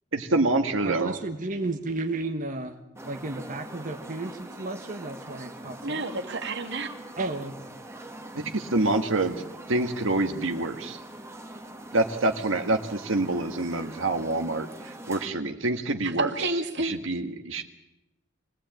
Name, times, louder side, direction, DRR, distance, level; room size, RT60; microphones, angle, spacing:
voice 1, 0.1-1.2 8.3-9.4 9.7-11.0 11.9-16.3 16.8-17.6, right 2 dB, 80° right, 5 dB, 1.8 m, -26 dB
voice 2, 0.8-2.8 3.0-6.1 7.2-7.7, right 2 dB, 40° right, 4 dB, 1.4 m, -33 dB
sound 1, 3.0-15.3, right 1 dB, 15° right, 1.7 m, -43 dB
voice 3, 5.8-6.9 16.0-16.9, right 2 dB, 60° right, 6 dB, 2.3 m, -30 dB
23.5 x 18.0 x 9.1 m, 0.93 s
head